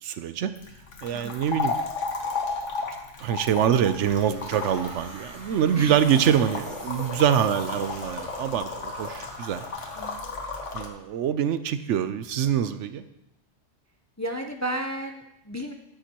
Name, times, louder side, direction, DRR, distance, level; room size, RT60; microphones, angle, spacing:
voice 1, 0.0-0.5 1.0-1.7 2.2-2.4 3.2-9.7 10.7-13.0, right 9 dB, 80° right, 12 dB, 0.9 m, -25 dB
sound 1, 0.6-10.9, left 4 dB, 80° left, 1.4 m, -34 dB
sound 2, 3.3-10.8, right 1 dB, 30° right, 1.8 m, -45 dB
voice 2, 14.2-15.7, right 1 dB, 20° left, 4 dB, 0.5 m, -33 dB
12.5 x 9.0 x 2.9 m, 0.84 s
omnidirectional pair, 1.2 m